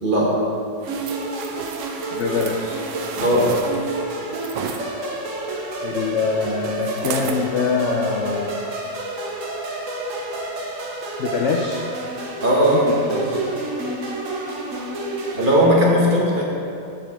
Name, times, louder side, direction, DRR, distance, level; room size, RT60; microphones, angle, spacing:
voice 1, 0.0-0.3 3.2-3.5 12.4-13.4 15.3-16.4, equal, 35° right, -4 dB, 1.1 m, -18 dB
sound 1, 0.8-4.8 6.8-7.4 8.0-8.1, right 7 dB, 90° right, 1.3 m, -34 dB
sound 2, 0.9-15.6, right 2 dB, 50° right, 1.2 m, -29 dB
voice 2, 2.1-2.8 5.8-8.5 11.2-11.8 12.7-12.8, left 5 dB, 90° left, 1 dB, 0.6 m, -24 dB
12.0 x 5.0 x 3.6 m, 2.6 s
omnidirectional pair, 1.9 m